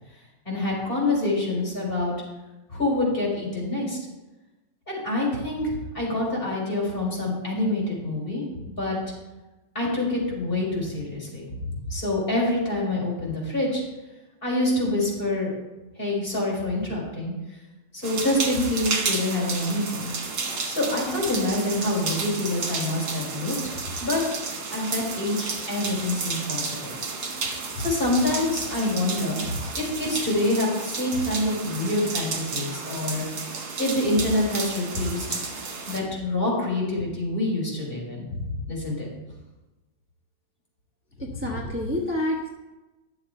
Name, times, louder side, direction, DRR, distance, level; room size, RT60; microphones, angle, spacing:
voice 1, 0.5-2.1 2.7-4.0 4.9-8.4 8.8-9.0 9.8-13.8 14.4-15.5 16.0-17.3 17.9-20.1 20.7-23.5 24.0-24.2 24.7-27.0 27.7-33.2 33.8-35.4 35.9-39.1 41.2-41.5, left 2 dB, 30° left, -3 dB, 3.7 m, -26 dB
sound 1, 18.0-36.0, right 4 dB, 80° right, 2.2 m, -32 dB
voice 2, 41.2-42.5, left 1 dB, 10° right, -3 dB, 0.8 m, -28 dB
11.0 x 7.1 x 4.3 m, 1.1 s
omnidirectional pair, 2.0 m